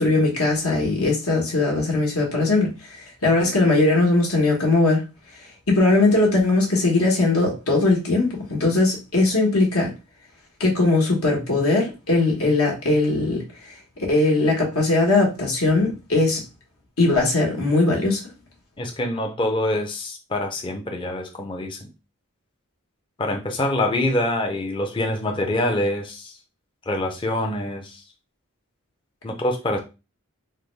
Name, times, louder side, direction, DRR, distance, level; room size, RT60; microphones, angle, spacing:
voice 1, 0.0-5.0 5.7-9.9 10.6-13.4 14.1-16.4 17.0-18.2, left 2 dB, 75° left, 1.2 m, -20 dB
voice 2, 18.8-21.9 23.2-26.3 26.9-28.0 29.2-29.8, left 1 dB, 20° left, 0.5 m, -25 dB
3.4 x 2.2 x 3.1 m
head